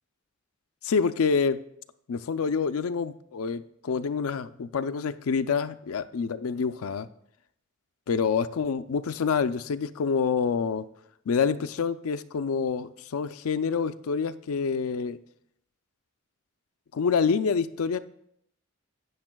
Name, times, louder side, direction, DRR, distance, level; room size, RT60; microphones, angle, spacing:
voice 1, 0.8-1.6 2.1-7.1 8.1-10.9 11.3-15.2 16.9-18.0, left 5 dB, 80° left, 12 dB, 0.4 m, -27 dB
12.0 x 8.6 x 2.3 m, 0.73 s
head